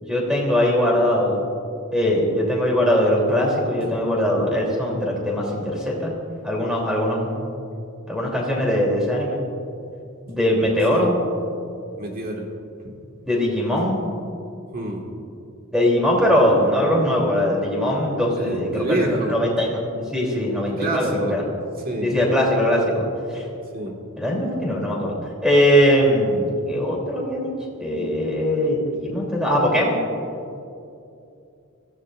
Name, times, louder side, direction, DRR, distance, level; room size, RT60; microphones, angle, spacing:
voice 1, 0.0-1.4 1.9-6.1 6.4-7.5 8.1-9.4 10.3-11.2 13.2-14.0 15.7-21.4 22.0-23.5 24.2-25.1 25.4-27.5 27.8-30.0, equal, 5° right, -3 dB, 3.0 m, -21 dB
voice 2, 12.0-12.5 12.8-13.0 14.7-15.1 18.3-19.4 20.7-21.4 21.9-22.2 23.7-24.0, right 1 dB, 45° right, 0 dB, 1.7 m, -27 dB
23.0 x 15.0 x 2.5 m, 2.6 s
head